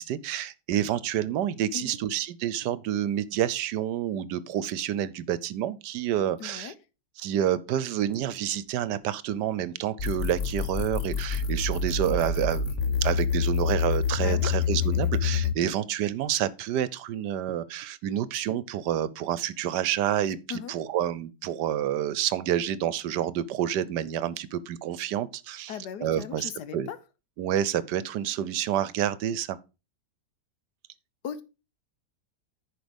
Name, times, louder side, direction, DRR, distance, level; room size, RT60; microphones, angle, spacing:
voice 1, 0.0-6.7 7.2-25.7 26.0-26.9 27.4-29.6, right 11 dB, 80° right, 1.3 m, -28 dB
voice 2, 6.4-6.7 14.2-14.5 20.5-20.7 25.7-27.0 31.2-31.4, left 7 dB, 70° left, 1.5 m, -37 dB
sound 1, 10.0-15.6, left 6 dB, 55° left, 1.0 m, -27 dB
10.5 x 5.1 x 5.2 m
omnidirectional pair, 1.9 m